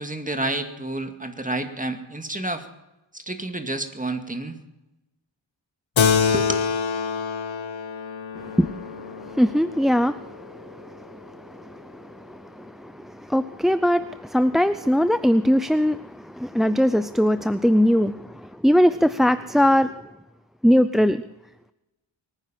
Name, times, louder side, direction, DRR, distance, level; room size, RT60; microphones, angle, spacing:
voice 1, 0.0-2.6 3.1-4.6 6.2-6.6, right 2 dB, 15° right, 6 dB, 2.1 m, -29 dB
Keyboard (musical), 6.0-10.8, left 6 dB, 80° left, 1.0 m, -26 dB
voice 2, 8.4-19.9 20.6-21.2, equal, ahead, 13 dB, 0.5 m, -21 dB
23.0 x 9.9 x 5.8 m, 0.96 s
wide cardioid pair, 50°, 46 cm